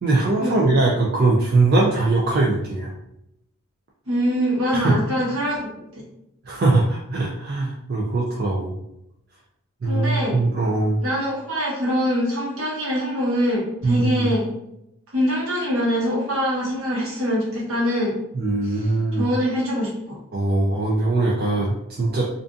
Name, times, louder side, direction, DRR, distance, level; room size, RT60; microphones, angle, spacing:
voice 1, 0.0-2.9 4.7-4.9 6.5-8.7 9.8-11.0 13.8-14.3 18.3-19.3 20.3-22.3, right 2 dB, 45° right, -3 dB, 0.3 m, -21 dB
voice 2, 4.1-6.0 9.8-10.4 11.0-14.5 15.1-18.1 18.6-20.2, equal, 70° right, -5 dB, 1.0 m, -24 dB
2.5 x 2.5 x 2.3 m, 0.82 s
head